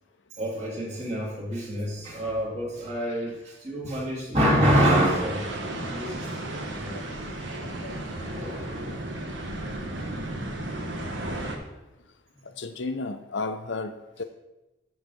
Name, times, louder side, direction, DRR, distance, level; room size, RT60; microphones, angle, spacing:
voice 1, 0.4-5.5 5.8-7.0 7.9-9.0 10.0-10.2, equal, 35° right, -5 dB, 2.5 m, -27 dB
sound 1, 4.6-11.6, right 1 dB, 80° right, 1.3 m, -34 dB
voice 2, 7.6-8.0 8.3-9.0 11.2-11.4 12.4-14.2, left 3 dB, 75° left, 9 dB, 0.7 m, -35 dB
9.7 x 4.0 x 6.4 m, 1.0 s
head